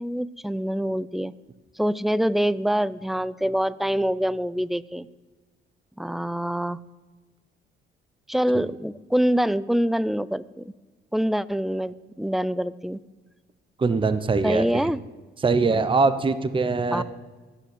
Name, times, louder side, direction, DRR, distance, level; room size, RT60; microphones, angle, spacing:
voice 1, 0.0-1.3 1.8-5.1 6.0-6.8 8.3-10.7 11.1-13.0 14.4-15.0 16.9-17.0, equal, ahead, 19 dB, 0.5 m, -25 dB
voice 2, 13.8-14.9 15.4-17.0, right 4 dB, 25° right, 12 dB, 0.9 m, -22 dB
17.5 x 7.3 x 9.0 m, 1.3 s
cardioid pair, 90°, 20 cm